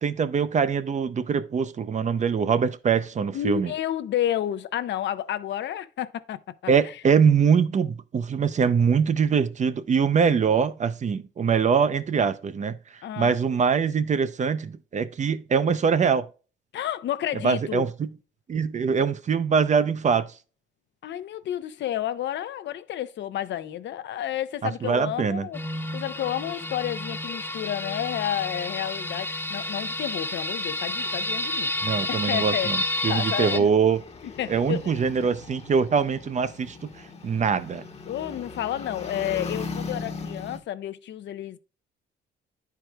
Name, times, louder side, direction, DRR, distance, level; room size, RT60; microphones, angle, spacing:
voice 1, 0.0-3.7 6.7-12.8 13.2-16.3 17.4-18.1 18.5-20.3 24.6-25.5 31.8-34.0 34.5-36.9 37.2-37.8, right 6 dB, 35° right, 0.5 m, -23 dB
voice 2, 3.3-6.8 13.0-13.4 16.7-17.9 21.0-25.6 25.9-32.7 33.1-33.7 34.4-35.0 38.1-41.6, left 11 dB, 65° left, 0.5 m, -31 dB
sound 1, 25.5-33.6, left 1 dB, 10° left, 0.6 m, -30 dB
sound 2, 30.6-40.6, left 4 dB, 30° left, 0.9 m, -39 dB
10.0 x 4.6 x 2.2 m
cardioid pair, 90°, 20 cm